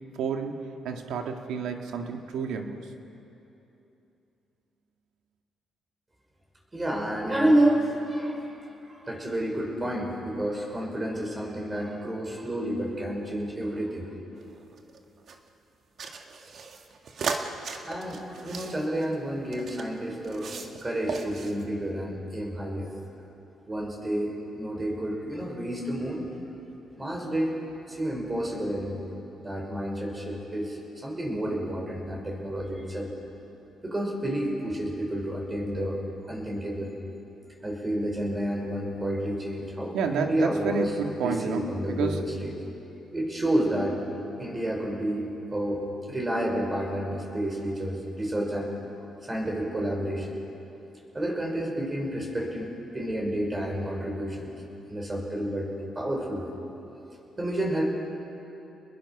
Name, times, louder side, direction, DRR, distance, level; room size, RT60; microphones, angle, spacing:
voice 1, 0.2-0.5 0.8-2.8 39.9-41.7 42.0-42.2, right 6 dB, 80° right, 4 dB, 1.9 m, -30 dB
voice 2, 6.7-8.6 8.8-14.1 17.3-17.4 17.8-20.5 20.8-22.9 23.7-26.3 27.0-27.6 27.9-29.1 29.4-33.1 33.8-36.0 36.3-36.9 37.6-40.9 41.2-42.6 43.1-44.0 44.4-48.7 49.2-50.4 51.1-54.5 54.9-56.6 57.4-57.8, right 1 dB, 20° right, 0 dB, 5.7 m, -30 dB
sound 1, 14.4-15.4 16.0-19.9 20.2-20.8 21.1-21.6, right 5 dB, 55° right, 1.7 m, -36 dB
30.0 x 21.0 x 6.1 m, 2.9 s
cardioid pair, 90°, 0 cm